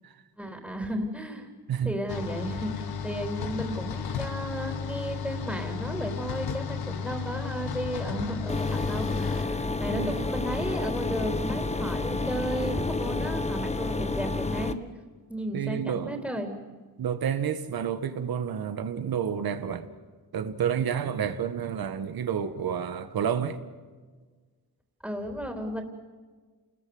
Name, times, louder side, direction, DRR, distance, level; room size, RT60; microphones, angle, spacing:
voice 1, 0.4-1.5 1.8-14.7 15.3-16.6 25.0-25.8, equal, 5° right, 3.7 m, -34 dB
sound 1, 2.1-9.4, left 6 dB, 85° left, 1.7 m, -34 dB
sound 2, 8.5-14.7, left 3 dB, 20° left, 1.3 m, -30 dB
voice 2, 9.9-10.3 15.5-16.2 17.0-19.9 20.3-23.6, right 8 dB, 75° right, 1.8 m, -30 dB
28.5 x 21.0 x 8.0 m
cardioid pair, 85°, 36 cm